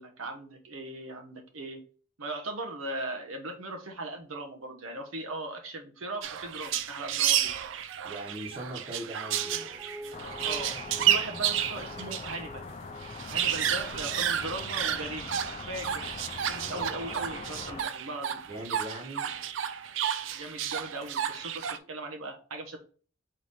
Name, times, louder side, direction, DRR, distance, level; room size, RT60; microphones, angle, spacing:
voice 1, 0.0-1.8 2.2-7.5 10.4-12.7 13.3-15.3 15.7-16.0 16.5-18.4 20.3-22.8, right 2 dB, 90° right, 5 dB, 0.9 m, -39 dB
sound 1, 6.2-12.4 12.7-12.8 13.0-21.8, right 10 dB, 70° right, 0.4 m, -31 dB
voice 2, 8.0-9.7 13.4-13.8 16.6-16.9 18.5-19.3, right 1 dB, 25° right, 1 dB, 1.1 m, -41 dB
Guitar, 8.6-15.6 16.0-16.1, equal, 10° right, 0.7 m, -48 dB
sound 2, 10.1-17.8, left 4 dB, 30° left, 0.3 m, -42 dB
3.9 x 3.2 x 4.0 m, 0.41 s
head